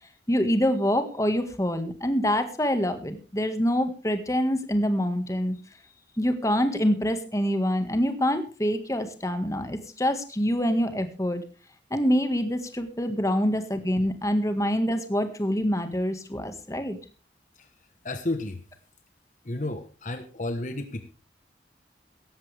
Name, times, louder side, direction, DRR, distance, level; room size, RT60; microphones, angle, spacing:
voice 1, 0.3-5.6 6.2-11.4 11.9-17.0, equal, 15° left, 8 dB, 1.7 m, -25 dB
voice 2, 18.0-18.6 19.4-21.1, left 2 dB, 45° left, 9 dB, 1.2 m, -32 dB
17.5 x 13.5 x 3.4 m, 0.35 s
head